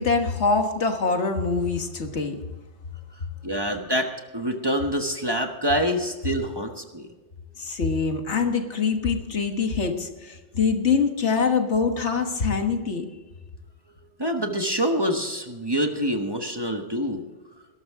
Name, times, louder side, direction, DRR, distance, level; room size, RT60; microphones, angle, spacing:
voice 1, 0.0-2.4 7.6-13.1, left 5 dB, 80° left, 5 dB, 1.8 m, -24 dB
voice 2, 3.4-7.1 14.2-17.2, equal, 20° right, 4 dB, 1.2 m, -26 dB
19.0 x 12.5 x 3.7 m, 1.2 s
omnidirectional pair, 1.2 m